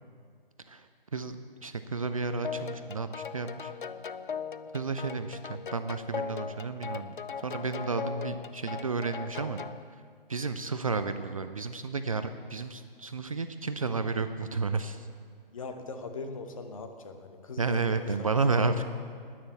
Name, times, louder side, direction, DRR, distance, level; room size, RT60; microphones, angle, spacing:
voice 1, 1.6-3.7 4.7-7.2 7.4-9.6 10.3-15.1 17.6-18.8, right 4 dB, 35° right, 10 dB, 0.5 m, -31 dB
sound 1, 2.4-9.8, left 6 dB, 60° left, 0.6 m, -39 dB
voice 2, 15.5-18.8, left 3 dB, 35° left, 7 dB, 1.1 m, -41 dB
10.0 x 9.4 x 8.5 m, 2.2 s
figure-of-eight pair, 140°, 29 cm